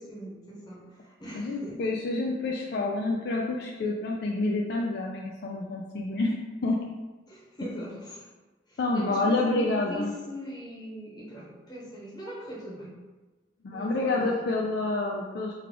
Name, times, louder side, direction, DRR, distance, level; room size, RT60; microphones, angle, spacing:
voice 1, 0.0-1.9 7.3-8.3 8.7-13.0 13.7-14.7, equal, 20° left, -5 dB, 0.8 m, -41 dB
voice 2, 1.3-6.4 6.6-6.8 7.6-7.7 8.8-10.1 13.6-15.5, left 2 dB, 60° left, -2 dB, 0.3 m, -28 dB
3.3 x 2.3 x 3.6 m, 1.2 s
head